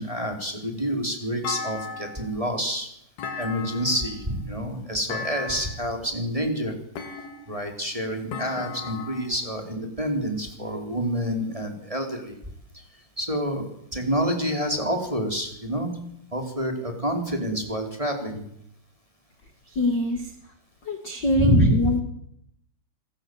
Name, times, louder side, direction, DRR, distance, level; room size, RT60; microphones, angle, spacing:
voice 1, 0.0-2.9 3.4-6.7 7.5-12.3 13.2-13.7 13.9-15.9 16.3-18.4 21.3-21.7, equal, 5° right, 4 dB, 3.9 m, -27 dB
Thump thud, 1.4-2.4 3.2-4.1 5.1-5.9 7.0-7.7 8.3-9.3, left 5 dB, 60° left, 4.8 m, -35 dB
voice 2, 19.6-20.5 20.8-22.0, left 1 dB, 40° left, 7 dB, 1.7 m, -24 dB
26.5 x 20.5 x 8.1 m, 0.72 s
omnidirectional pair, 5.3 m